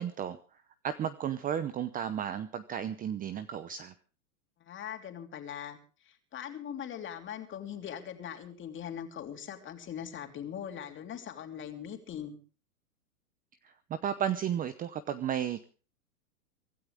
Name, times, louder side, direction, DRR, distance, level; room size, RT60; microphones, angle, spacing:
voice 1, 0.0-3.9 13.6-15.6, right 9 dB, 20° right, 13 dB, 0.7 m, -34 dB
voice 2, 4.6-5.8 6.0-12.4, left 9 dB, 25° left, 5 dB, 3.1 m, -41 dB
24.5 x 13.0 x 3.5 m, 0.38 s
hypercardioid pair, 125°, 46 cm